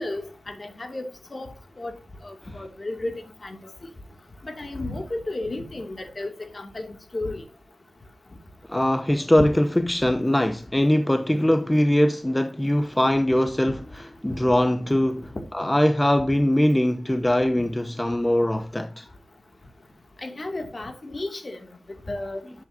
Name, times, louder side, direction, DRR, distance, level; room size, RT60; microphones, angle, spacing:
voice 1, 0.0-1.5 1.8-1.9 2.2-3.1 3.4-3.6 4.4-7.4 10.0-10.1 14.3-14.4 20.2-21.6 22.1-22.4, left 2 dB, 35° left, 2.3 m, -33 dB
voice 2, 8.7-19.1, left 1 dB, 10° left, 0.7 m, -22 dB
11.0 x 7.8 x 2.7 m
wide cardioid pair, 75°, 0 cm